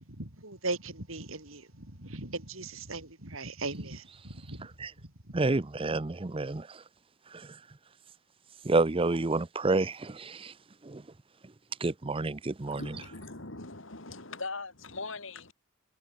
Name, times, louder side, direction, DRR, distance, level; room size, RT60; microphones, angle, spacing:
voice 1, 0.1-4.7 5.0-5.6, right 3 dB, 80° right, 5.3 m, -39 dB
voice 2, 5.3-6.8 7.3-7.5 8.6-10.5 10.8-11.0 11.8-12.8, right 3 dB, 25° right, 0.6 m, -29 dB
voice 3, 12.6-15.5, left 3 dB, 65° left, 4.1 m, -41 dB
head